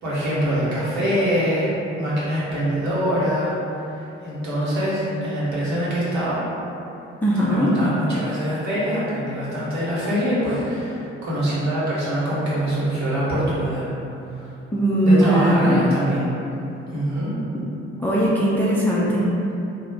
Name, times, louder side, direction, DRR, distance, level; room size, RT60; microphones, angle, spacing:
voice 1, 0.0-3.5 3.9-6.4 7.5-13.8 14.2-14.5 15.0-16.3 16.9-17.3, equal, 55° right, -9 dB, 1.1 m, -24 dB
voice 2, 7.2-7.7 14.7-15.8 17.5-17.6 18.0-19.3, right 1 dB, 5° left, -6 dB, 0.4 m, -19 dB
2.4 x 2.1 x 3.4 m, 2.9 s
figure-of-eight pair, 45°, 34 cm